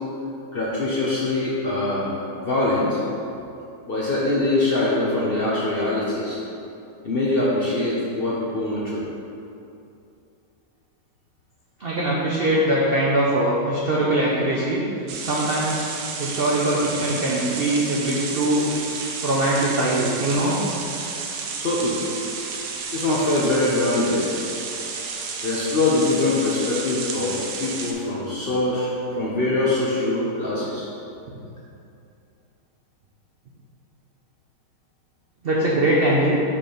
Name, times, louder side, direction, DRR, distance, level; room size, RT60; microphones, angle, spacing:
voice 1, 0.5-2.1 2.4-3.0 3.9-6.4 7.0-9.0 21.6-22.0 22.9-24.4 25.4-30.9, left 2 dB, 45° left, -6 dB, 0.7 m, -23 dB
voice 2, 11.8-14.8 15.2-15.9 16.2-18.7 19.2-20.6 35.4-36.3, right 1 dB, 55° right, -5 dB, 0.6 m, -22 dB
sound 1, 15.1-27.9, right 5 dB, 85° right, 1.3 m, -32 dB
5.8 x 4.4 x 5.0 m, 2.7 s
omnidirectional pair, 1.9 m